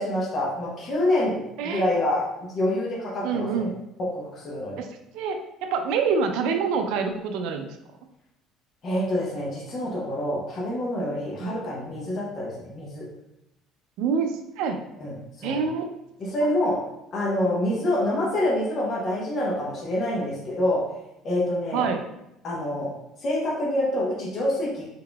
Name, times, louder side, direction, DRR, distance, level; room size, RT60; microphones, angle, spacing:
voice 1, 0.0-3.7 4.1-4.8 8.8-13.1 15.0-15.6 16.2-16.8 17.1-20.8 21.2-21.8 22.4-22.9 23.2-24.8, left 1 dB, 30° left, -4 dB, 0.8 m, -26 dB
voice 2, 1.6-1.9 3.2-3.8 4.8-4.9 5.1-7.7 11.4-11.5 14.0-14.8 15.4-15.9 16.4-16.5 21.7-22.0, right 5 dB, 75° right, 5 dB, 0.4 m, -26 dB
3.9 x 3.6 x 2.2 m, 0.87 s
cardioid pair, 170°, 0 cm